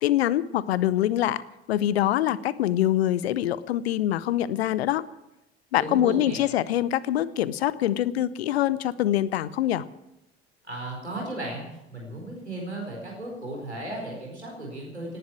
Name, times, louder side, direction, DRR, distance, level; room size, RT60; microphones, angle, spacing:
voice 1, 0.0-1.4 1.7-5.0 5.7-9.8, left 12 dB, 70° left, 19 dB, 0.7 m, -24 dB
voice 2, 5.8-6.5 10.7-15.2, right 1 dB, 90° right, -1 dB, 4.5 m, -35 dB
18.0 x 11.0 x 6.1 m, 0.90 s
figure-of-eight pair, 60°, 33 cm